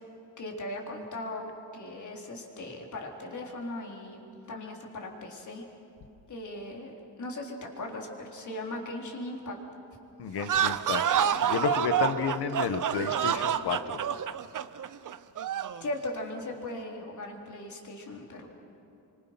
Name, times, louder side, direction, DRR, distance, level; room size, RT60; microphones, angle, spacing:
voice 1, 0.4-5.6 6.3-9.6 15.8-18.5, left 1 dB, 45° left, 1 dB, 3.9 m, -38 dB
voice 2, 10.2-14.0, left 6 dB, 70° left, 9 dB, 1.7 m, -32 dB
sound 1, 10.4-15.8, right 9 dB, 45° right, 0.8 m, -28 dB
30.0 x 25.0 x 6.1 m, 2.9 s
cardioid pair, 130°, 42 cm